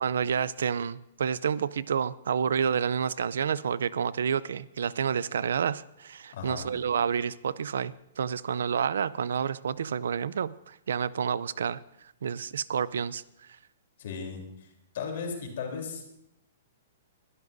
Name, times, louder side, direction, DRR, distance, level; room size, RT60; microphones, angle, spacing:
voice 1, 0.0-11.8 12.2-13.2, right 7 dB, 75° right, 0.4 m, -29 dB
voice 2, 6.3-6.7 14.0-14.7 14.9-16.0, left 5 dB, 50° left, 3.5 m, -36 dB
22.0 x 12.0 x 2.7 m
hypercardioid pair, 175°, 0 cm